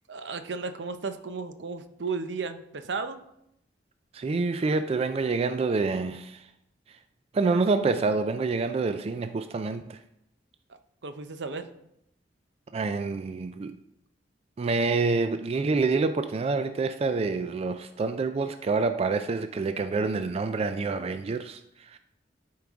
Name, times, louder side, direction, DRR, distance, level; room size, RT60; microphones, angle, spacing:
voice 1, 0.1-3.2 11.0-11.7, right 4 dB, 75° right, 0.6 m, -34 dB
voice 2, 4.1-6.5 7.3-10.0 12.7-13.8 14.6-21.6 21.9-22.0, right 4 dB, 35° right, 0.3 m, -27 dB
12.0 x 4.7 x 3.5 m
head